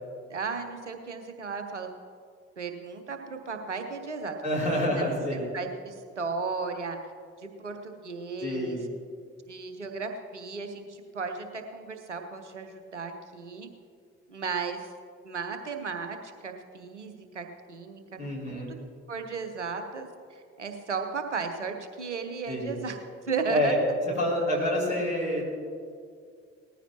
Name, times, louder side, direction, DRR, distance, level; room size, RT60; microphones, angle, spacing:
voice 1, 0.3-1.9 2.6-4.4 5.0-7.0 7.4-8.8 9.5-13.7 14.3-14.9 15.2-18.0 18.5-18.8 19.1-23.0 23.2-23.7, right 4 dB, 90° right, 6 dB, 0.8 m, -35 dB
voice 2, 4.4-5.5 8.4-8.9 18.2-18.7 22.5-22.7 23.5-23.8 24.0-25.4, equal, 85° left, -8 dB, 3.2 m, -28 dB
19.5 x 14.0 x 2.9 m, 2.2 s
figure-of-eight pair, 45°, 34 cm